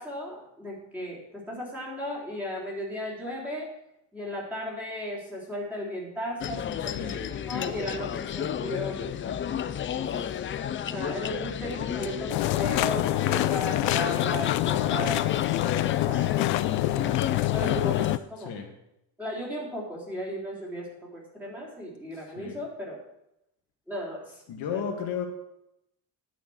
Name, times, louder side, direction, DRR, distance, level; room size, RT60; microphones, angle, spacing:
voice 1, 0.0-3.7 4.1-10.3 10.8-15.2 15.6-16.3 16.7-17.1 17.5-18.5 19.2-23.0 23.9-24.4 24.7-24.8, equal, 5° right, -5 dB, 3.2 m, -36 dB
sound 1, 6.4-18.2, left 9 dB, 30° left, 0.4 m, -32 dB
voice 2, 6.8-7.2 10.1-10.6 14.8-15.2 18.4-18.7 22.4-22.6 24.5-25.3, left 7 dB, 65° left, 2 dB, 2.0 m, -35 dB
sound 2, 12.3-18.2, left 17 dB, 90° left, 0.6 m, -26 dB
11.0 x 6.1 x 7.5 m, 0.83 s
cardioid pair, 165°, 43 cm